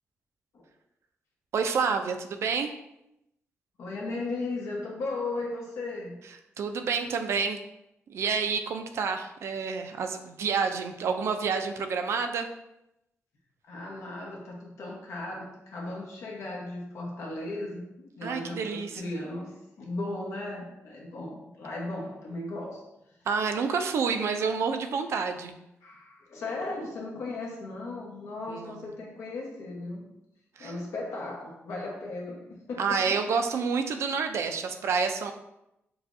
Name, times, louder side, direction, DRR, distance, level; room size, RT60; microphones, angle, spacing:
voice 1, 1.5-2.7 6.6-7.6 8.1-12.5 18.2-19.0 23.3-25.5 28.5-28.9 30.6-30.7 32.8-35.3, right 5 dB, 70° right, 6 dB, 0.4 m, -29 dB
voice 2, 3.8-6.2 13.6-22.8 25.8-30.0 30.6-33.1, left 2 dB, 80° left, -2 dB, 1.1 m, -36 dB
6.7 x 2.3 x 2.6 m, 0.86 s
wide cardioid pair, 160°, 5 cm